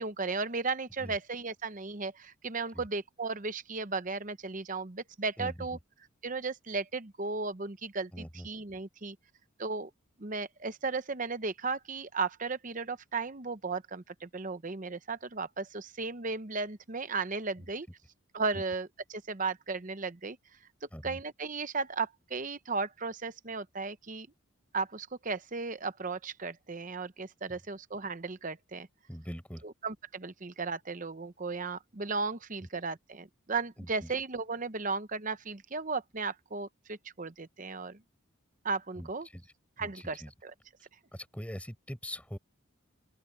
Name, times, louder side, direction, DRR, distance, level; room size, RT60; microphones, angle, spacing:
voice 1, 0.0-5.8 6.2-9.2 9.6-9.9 10.2-17.9 18.3-20.4 21.0-24.3 24.7-28.9 29.6-38.0 38.6-39.3 39.8-40.5, right 4 dB, 35° right, 0.8 m, -35 dB
voice 2, 5.4-5.7 8.1-8.5 17.6-17.7 18.5-18.6 20.9-21.2 29.1-29.6 32.6-32.7 33.8-34.1 39.0-39.5 39.8-40.3 41.1-42.4, equal, 5° left, 6.7 m, -42 dB
open air
head